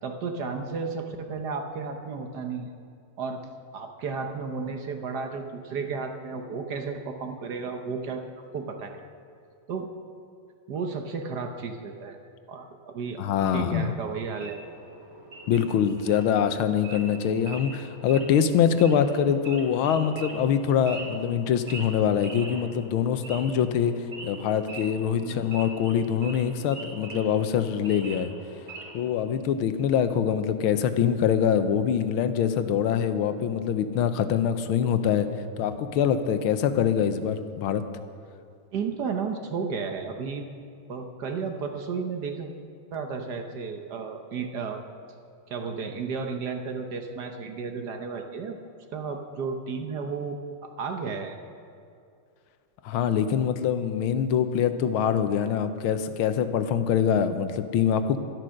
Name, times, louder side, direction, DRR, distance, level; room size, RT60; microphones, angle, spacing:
voice 1, 0.0-2.7 3.2-3.4 3.7-9.0 9.7-9.9 10.7-12.2 12.5-13.2 13.5-14.6 25.2-25.5 38.7-40.4 40.9-42.5 42.9-44.8 45.5-48.6 48.9-51.3, right 5 dB, 55° right, 5 dB, 1.3 m, -33 dB
voice 2, 13.2-13.9 15.5-23.9 24.2-28.3 28.9-35.3 35.6-37.8 52.8-58.2, left 8 dB, 75° left, 10 dB, 1.6 m, -24 dB
Wild animals / Idling, 14.4-29.1, right 2 dB, 35° right, 3.0 m, -43 dB
12.5 x 12.0 x 6.4 m, 2.5 s
omnidirectional pair, 2.4 m